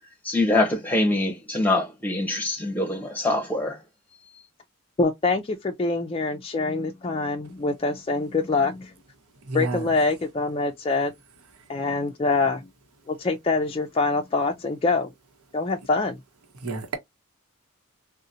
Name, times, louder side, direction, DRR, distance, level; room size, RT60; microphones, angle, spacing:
voice 1, 0.2-3.8, left 2 dB, 10° left, 0.7 m, -24 dB
voice 2, 5.0-8.9 9.5-11.1 11.7-12.7 13.1-15.1 15.5-16.2, left 3 dB, 25° left, 0.3 m, -25 dB
voice 3, 9.5-9.8 16.6-16.9, right 3 dB, 90° right, 0.8 m, -29 dB
3.8 x 2.1 x 2.6 m
head